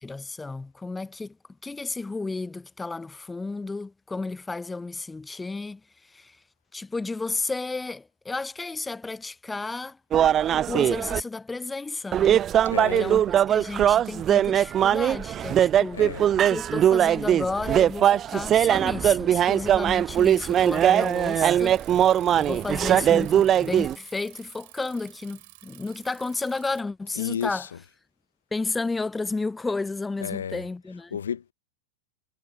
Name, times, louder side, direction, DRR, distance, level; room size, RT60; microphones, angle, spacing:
voice 1, 0.0-1.4 1.6-5.8 6.1-6.4 6.7-10.0 10.7-12.5 13.0-16.0 16.5-27.6 28.5-31.2, left 3 dB, 10° left, 0.8 m, -32 dB
sound 1, 10.1-11.2 12.1-23.9, right 10 dB, 30° right, 0.4 m, -21 dB
voice 2, 12.6-13.2 15.9-16.3 27.1-27.8 30.2-30.6 31.1-31.5, left 8 dB, 70° left, 1.7 m, -32 dB
Bicycle, 20.1-26.8, right 23 dB, 50° right, 5.2 m, -50 dB
figure-of-eight pair, 90°, 0 cm